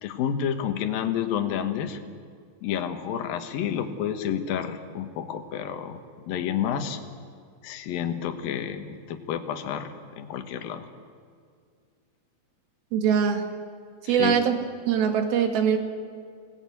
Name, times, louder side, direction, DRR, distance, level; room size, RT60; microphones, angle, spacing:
voice 1, 0.0-2.0 2.6-7.0 7.6-10.9 14.0-14.4, left 9 dB, 70° left, 7 dB, 2.9 m, -30 dB
voice 2, 12.9-13.5 14.1-14.6 14.9-15.8, right 7 dB, 70° right, 5 dB, 3.6 m, -22 dB
25.0 x 18.5 x 9.5 m, 2.1 s
omnidirectional pair, 4.6 m